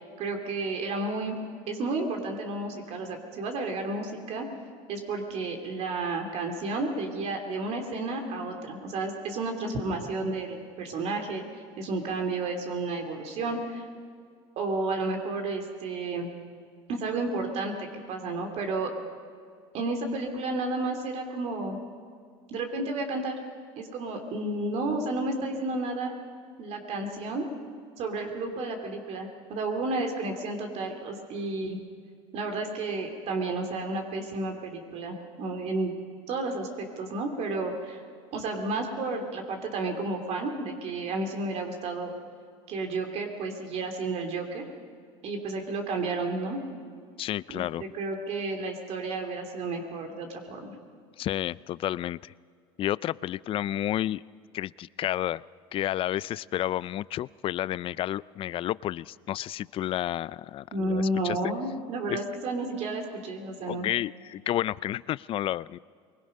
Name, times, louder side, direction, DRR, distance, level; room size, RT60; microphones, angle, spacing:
voice 1, 0.2-1.4 1.7-4.5 4.9-11.4 11.8-13.9 14.6-16.3 16.9-18.9 19.7-21.8 22.5-23.4 23.8-26.1 26.6-27.5 28.0-31.8 32.3-35.9 36.3-38.0 38.3-42.1 42.7-44.6 45.2-46.6 47.5-50.7 60.7-63.9, right 2 dB, 60° right, 3 dB, 2.8 m, -32 dB
voice 2, 47.2-47.8 51.2-52.3 52.8-54.2 54.5-55.4 55.7-61.5 62.1-62.2 63.7-65.8, left 13 dB, 45° left, 21 dB, 0.4 m, -31 dB
23.0 x 20.5 x 5.5 m, 2.1 s
supercardioid pair, 95°, 13 cm